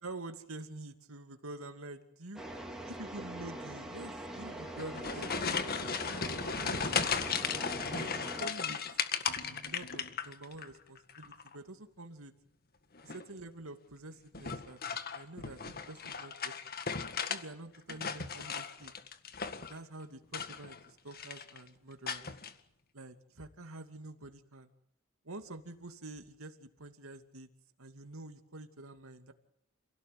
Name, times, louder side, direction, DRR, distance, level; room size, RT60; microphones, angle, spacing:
voice 1, 0.0-2.4 2.9-5.8 6.5-7.2 7.9-8.8 9.4-12.3 13.0-14.8 15.1-16.5 17.3-18.9 19.7-22.3 22.9-24.7 25.2-27.5 27.8-29.3, right 2 dB, 85° right, 7 dB, 2.5 m, -47 dB
sound 1, 2.4-8.5, right 1 dB, 5° right, 4.5 m, -43 dB
sound 2, 4.6-10.7 11.0-11.5 12.9-13.3 14.3-17.4 17.7-19.8 20.2-20.8 21.1-21.6 22.1-22.5, left 6 dB, 45° left, 1.8 m, -36 dB
28.5 x 17.5 x 9.4 m, 0.73 s
head